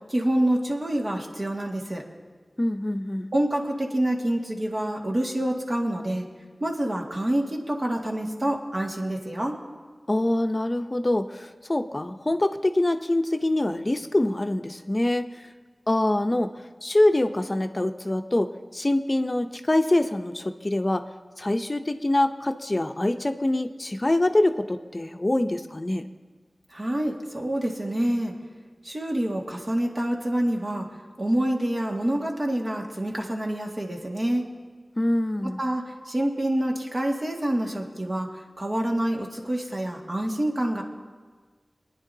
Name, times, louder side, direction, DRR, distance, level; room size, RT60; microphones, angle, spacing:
voice 1, 0.1-2.0 3.3-6.3 6.6-9.6 26.7-28.3 28.8-30.9 31.2-34.4 35.4-40.8, right 1 dB, 55° right, -1 dB, 1.8 m, -27 dB
voice 2, 2.6-3.3 10.1-15.4 15.9-21.1 21.4-26.1 35.0-35.6, left 1 dB, 40° left, 7 dB, 0.6 m, -25 dB
23.5 x 9.9 x 2.8 m, 1.5 s
wide cardioid pair, 40°, 0 cm